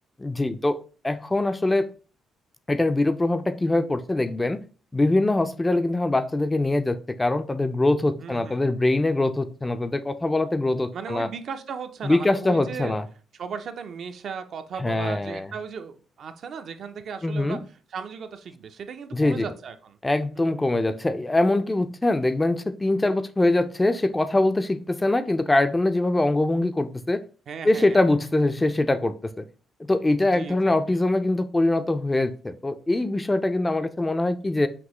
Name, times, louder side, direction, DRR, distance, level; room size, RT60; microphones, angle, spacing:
voice 1, 0.2-1.9 2.7-4.6 4.9-11.3 12.0-13.0 14.8-15.5 17.2-17.6 19.1-19.5 20.0-27.2 27.6-29.4 29.9-34.7, left 2 dB, 15° left, 11 dB, 0.4 m, -23 dB
voice 2, 8.2-8.6 10.9-12.9 13.4-17.6 17.9-20.0 20.3-20.5 27.5-28.0 30.3-31.0, right 6 dB, 60° right, 7 dB, 0.5 m, -36 dB
5.9 x 2.6 x 3.0 m, 0.38 s
cardioid pair, 90°, 0 cm